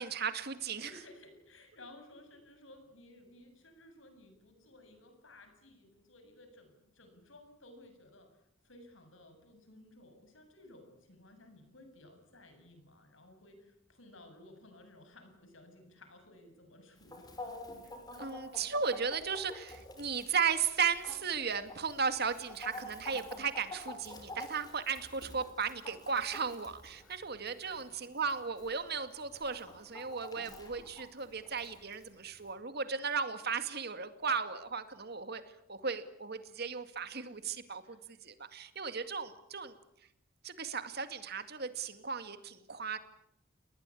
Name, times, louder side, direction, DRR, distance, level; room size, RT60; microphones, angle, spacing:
voice 1, 0.0-0.9 18.1-35.4 35.7-39.7 40.4-43.0, right 6 dB, 55° right, 10 dB, 2.2 m, -36 dB
voice 2, 0.8-17.6 27.0-27.3 27.6-27.8 37.8-38.0, left 1 dB, 80° left, 7 dB, 7.4 m, -57 dB
Chicken rooster, 17.0-32.5, left 2 dB, 20° left, 6.0 m, -50 dB
29.5 x 20.5 x 8.5 m, 0.80 s
head